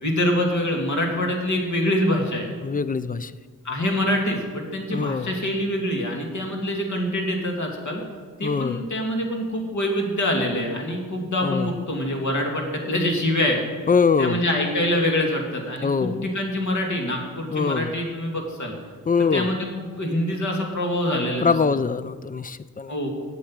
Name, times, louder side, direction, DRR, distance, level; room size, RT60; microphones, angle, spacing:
voice 1, 0.0-2.5 3.6-8.0 8.4-13.6 14.2-18.7 19.3-21.5 22.9-23.1, left 1 dB, 60° left, 0 dB, 2.3 m, -25 dB
voice 2, 2.6-3.3 4.9-5.3 8.4-8.8 11.4-11.7 13.9-14.5 15.8-16.3 17.5-18.0 19.1-19.5 21.4-22.9, left 5 dB, 25° left, 15 dB, 0.4 m, -23 dB
8.1 x 7.9 x 8.7 m, 1.5 s
wide cardioid pair, 145°, 33 cm